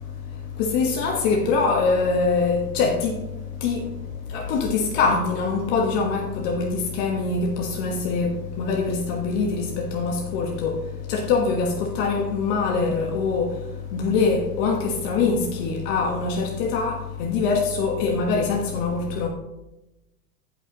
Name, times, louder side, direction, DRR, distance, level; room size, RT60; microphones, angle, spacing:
voice 1, 0.6-3.1 3.6-3.8 4.3-10.7 11.1-13.5 13.9-19.3, left 4 dB, 55° left, 1 dB, 1.4 m, -23 dB
15.0 x 5.8 x 2.9 m, 0.98 s
hypercardioid pair, 105°, 46 cm